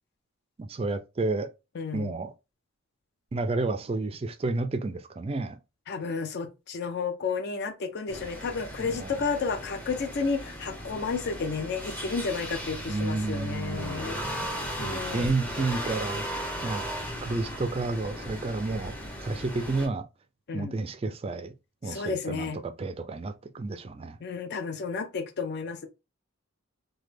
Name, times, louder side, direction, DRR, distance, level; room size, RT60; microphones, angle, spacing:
voice 1, 0.6-1.5 1.9-2.3 3.3-5.6 8.8-9.2 12.9-14.5 14.8-16.3 16.6-16.8 17.2-18.9 19.2-20.0 20.5-21.5 21.8-24.2, right 3 dB, 30° right, 0.3 m, -31 dB
voice 2, 1.8-2.1 5.9-15.3 20.5-20.8 21.8-22.6 24.2-25.9, left 5 dB, 50° left, 0.4 m, -32 dB
sound 1, 8.1-19.9, equal, 5° left, 0.6 m, -37 dB
3.1 x 2.2 x 3.2 m
head